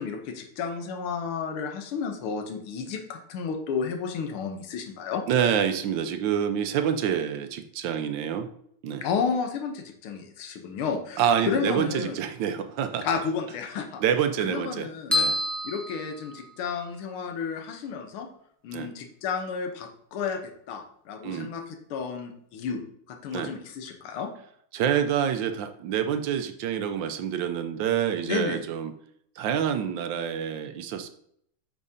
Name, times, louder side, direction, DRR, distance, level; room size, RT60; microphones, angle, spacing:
voice 1, 0.0-5.2 9.0-12.2 13.0-14.0 14.4-15.1 15.6-18.3 18.6-20.4 20.7-22.8 23.1-24.3 28.3-28.6, left 6 dB, 80° left, 5 dB, 1.8 m, -32 dB
voice 2, 5.3-8.5 8.8-9.0 11.2-13.0 14.0-15.4 18.7-18.9 21.2-21.5 23.3-23.5 24.7-28.9 29.4-31.1, right 8 dB, 75° right, 8 dB, 1.2 m, -27 dB
sound 1, 15.1-16.9, left 2 dB, ahead, 0.8 m, -28 dB
8.5 x 6.2 x 2.7 m, 0.68 s
omnidirectional pair, 2.3 m